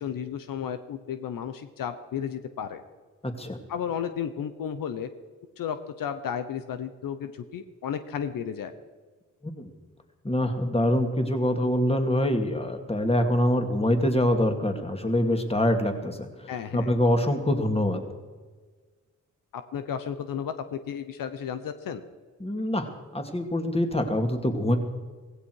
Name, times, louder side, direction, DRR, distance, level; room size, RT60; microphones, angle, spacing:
voice 1, 0.0-2.8 3.7-5.1 5.6-8.7 16.5-16.9 19.5-22.0, left 8 dB, 75° left, 10 dB, 1.0 m, -33 dB
voice 2, 10.2-16.3 16.7-18.0 22.4-24.8, left 1 dB, 15° left, 5 dB, 2.5 m, -25 dB
16.0 x 16.0 x 4.8 m, 1.4 s
cardioid pair, 55°, 34 cm